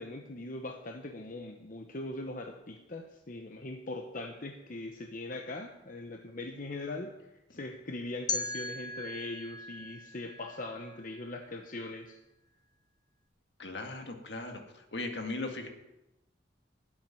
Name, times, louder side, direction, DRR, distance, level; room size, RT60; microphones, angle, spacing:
voice 1, 0.0-12.2, left 2 dB, 45° left, 4 dB, 1.0 m, -41 dB
sound 1, 8.3-11.2, left 3 dB, 25° left, 1.0 m, -38 dB
voice 2, 13.6-15.7, left 2 dB, 70° left, 4 dB, 2.0 m, -38 dB
12.0 x 7.8 x 9.5 m, 0.96 s
head